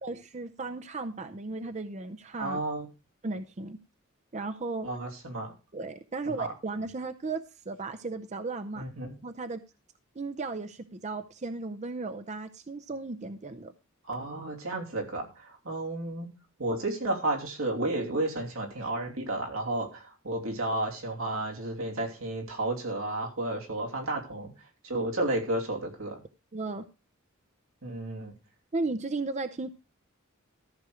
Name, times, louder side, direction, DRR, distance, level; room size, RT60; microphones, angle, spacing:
voice 1, 0.0-2.6 3.2-3.8 4.3-4.9 5.7-8.8 9.2-9.6 10.2-13.7 26.5-26.9 28.7-29.7, right 3 dB, 35° right, 9 dB, 0.6 m, -35 dB
voice 2, 2.4-2.9 4.8-5.5 6.4-6.5 8.8-9.1 14.1-16.3 16.6-24.5 24.8-26.2 27.8-28.3, right 2 dB, 90° right, 1 dB, 2.9 m, -32 dB
14.0 x 6.3 x 4.9 m, 0.29 s
head